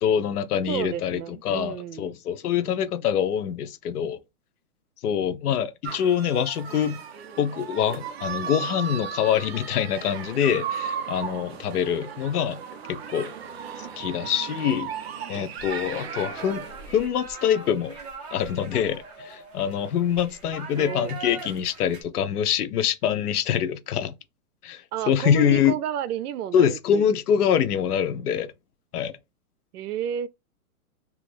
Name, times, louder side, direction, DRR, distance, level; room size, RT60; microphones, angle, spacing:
voice 1, 0.0-4.2 5.0-7.0 7.4-12.6 12.9-13.3 14.0-14.9 15.3-16.6 16.9-18.0 18.3-24.1 24.6-25.7 26.5-28.5 28.9-29.1, left 8 dB, 85° left, 0.7 m, -25 dB
voice 2, 0.7-2.2 20.7-21.2 24.9-27.1 29.7-30.3, right 10 dB, 90° right, 0.6 m, -31 dB
sound 1, 5.8-17.1, right 7 dB, 45° right, 0.5 m, -36 dB
sound 2, 15.6-22.0, right 3 dB, 30° right, 0.8 m, -41 dB
3.0 x 2.4 x 3.1 m
hypercardioid pair, 170°, 44 cm